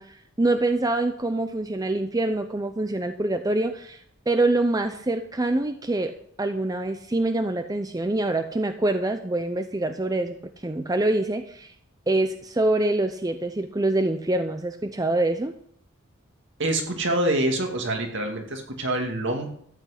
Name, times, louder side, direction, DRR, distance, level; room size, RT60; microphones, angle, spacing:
voice 1, 0.0-4.0 4.3-6.1 6.4-10.4 10.6-11.7 12.1-15.5, right 2 dB, 20° right, 7 dB, 0.6 m, -25 dB
voice 2, 16.6-19.5, right 1 dB, 60° right, 3 dB, 2.3 m, -26 dB
13.5 x 5.9 x 8.2 m, 0.68 s
head